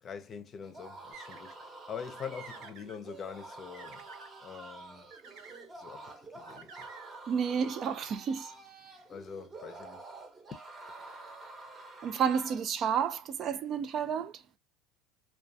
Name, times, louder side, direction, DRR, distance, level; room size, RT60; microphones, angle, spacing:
voice 1, 0.0-4.1 4.4-5.1 5.7-6.9 9.1-10.0, left 7 dB, 35° left, 0.5 m, -44 dB
sound 1, 0.6-12.7, right 2 dB, 20° right, 0.8 m, -48 dB
sound 2, 1.1-1.6 2.0-3.0 3.4-4.3 5.1-5.7 6.5-7.2, right 5 dB, 65° right, 0.8 m, -51 dB
voice 2, 7.3-8.5 12.0-14.4, right 7 dB, 40° right, 0.3 m, -31 dB
2.3 x 2.3 x 2.6 m
supercardioid pair, 110°, 0 cm